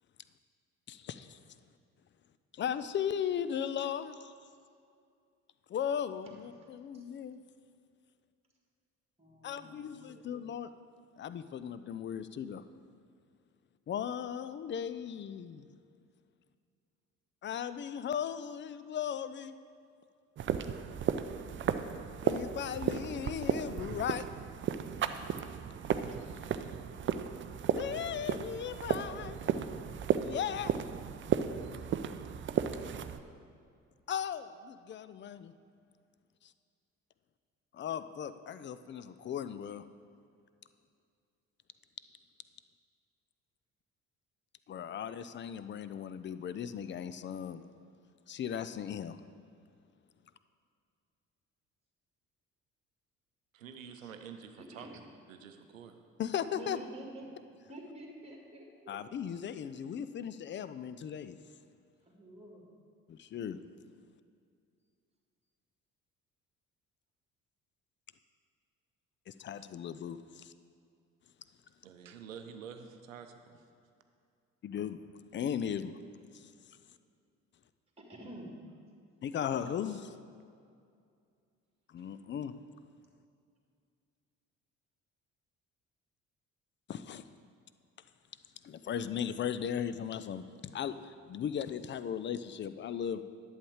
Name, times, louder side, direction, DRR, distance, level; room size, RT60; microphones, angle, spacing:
voice 1, 0.9-1.4 2.5-4.3 5.7-7.4 9.4-10.7 11.2-12.6 13.9-15.7 17.4-19.5 22.2-24.2 27.7-29.4 30.1-30.8 34.1-35.5 37.7-39.9 44.7-47.6 48.3-49.2 56.2-56.8 58.9-61.4 63.1-63.6 69.3-70.5 74.6-75.0 75.3-76.0 76.3-76.5 79.2-80.1 81.9-82.5 86.9-87.2 88.6-90.5 90.7-93.2, left 8 dB, 30° left, 13 dB, 0.5 m, -37 dB
voice 2, 9.2-10.3 26.1-26.4 54.7-55.0 56.5-57.4 57.7-59.0 62.1-62.6 78.0-78.6 82.0-82.1, right 1 dB, 15° right, 0 dB, 1.9 m, -49 dB
sound 1, 20.4-33.2, right 8 dB, 30° right, 0.5 m, -34 dB
voice 3, 53.5-54.9 55.3-56.0 71.8-73.6 79.4-80.0, right 7 dB, 80° right, 7 dB, 0.7 m, -48 dB
11.0 x 7.4 x 4.8 m, 2.3 s
figure-of-eight pair, 45°, 39 cm